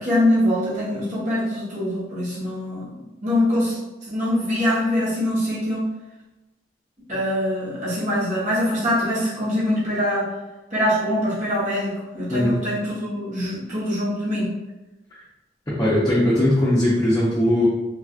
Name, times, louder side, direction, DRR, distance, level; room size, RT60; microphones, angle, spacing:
voice 1, 0.0-2.9 3.2-5.9 7.1-10.3 10.7-14.5, left 1 dB, 45° right, -10 dB, 1.1 m, -23 dB
voice 2, 15.7-17.7, left 1 dB, 20° left, -10 dB, 0.6 m, -19 dB
3.3 x 2.4 x 2.4 m, 1.0 s
head